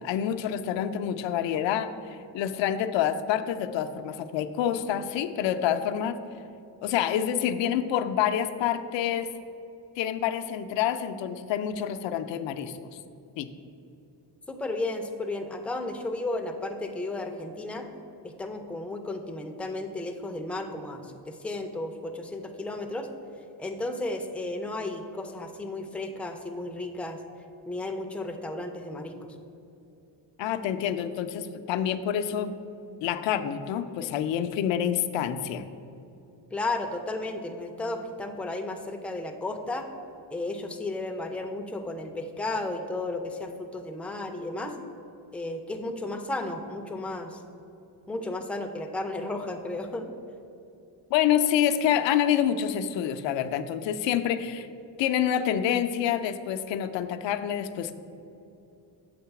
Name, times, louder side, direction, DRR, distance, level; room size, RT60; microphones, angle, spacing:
voice 1, 0.0-6.2 6.8-9.3 10.0-12.8 13.4-13.5 30.4-32.5 33.0-35.7 51.1-54.7 55.0-57.9, left 9 dB, 80° left, 10 dB, 0.5 m, -27 dB
voice 2, 14.5-17.9 18.2-23.1 23.6-27.2 27.7-29.3 36.5-39.9 40.3-44.8 45.3-47.4 48.1-50.1, left 2 dB, 5° left, 4 dB, 0.3 m, -33 dB
6.6 x 3.7 x 5.8 m, 2.7 s
cardioid pair, 120°, 44 cm